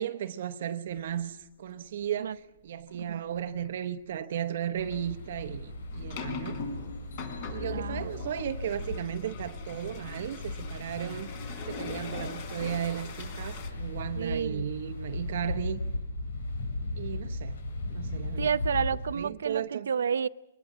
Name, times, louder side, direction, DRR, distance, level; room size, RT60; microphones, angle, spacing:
voice 1, 0.0-6.6 7.5-11.4 11.7-15.8 16.9-17.6 17.9-18.5 19.1-19.9, right 10 dB, 50° right, 1.0 m, -35 dB
sound 1, 2.9-3.0 3.5-3.7 4.8-13.7, left 5 dB, 35° left, 3.9 m, -41 dB
sound 2, 4.8-19.2, left 2 dB, 70° left, 7.9 m, -37 dB
voice 2, 7.7-8.1 14.2-14.7 18.4-20.3, right 7 dB, 70° right, 0.7 m, -30 dB
23.0 x 19.5 x 7.4 m
hypercardioid pair, 170°, 0 cm